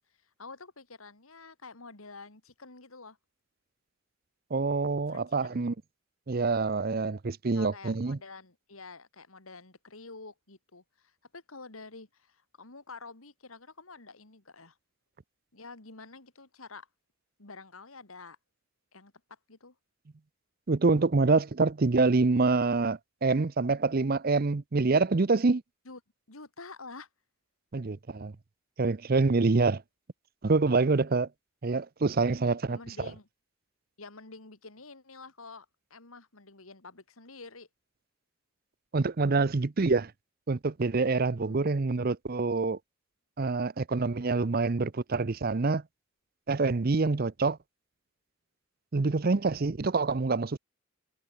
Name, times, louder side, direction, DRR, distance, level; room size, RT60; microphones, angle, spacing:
voice 1, 0.2-3.2 5.1-5.2 5.6-5.7 7.4-14.8 15.5-16.9 17.4-18.4 18.9-19.7 25.8-26.0 26.3-27.1 32.7-33.3 34.0-37.7 41.3-41.7, left 3 dB, 80° left, 2.8 m, -48 dB
voice 2, 4.5-5.7 6.3-8.2 20.7-25.6 27.7-28.3 28.8-29.8 30.4-31.3 31.6-32.8 38.9-40.1 40.5-42.8 43.4-45.8 46.5-47.6 48.9-50.6, right 3 dB, 45° right, 0.6 m, -26 dB
head